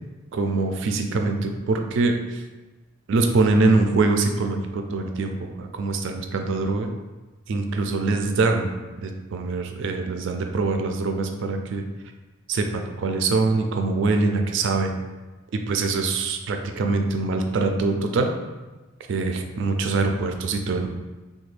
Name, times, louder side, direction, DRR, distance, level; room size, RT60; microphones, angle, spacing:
voice 1, 0.3-2.4 3.1-6.9 7.5-8.7 9.0-11.8 12.5-15.0 15.5-18.3 19.1-20.9, right 3 dB, 60° right, 4 dB, 0.3 m, -23 dB
3.3 x 2.2 x 3.2 m, 1.2 s
head